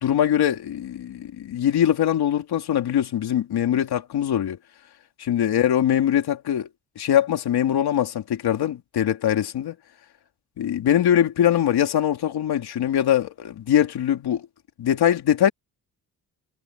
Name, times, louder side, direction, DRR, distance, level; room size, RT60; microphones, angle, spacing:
voice 1, 0.0-4.6 5.3-6.7 7.0-9.7 10.6-14.5 14.8-15.5, left 10 dB, 90° left, 3.0 m, -22 dB
wide cardioid pair, 135°, 37 cm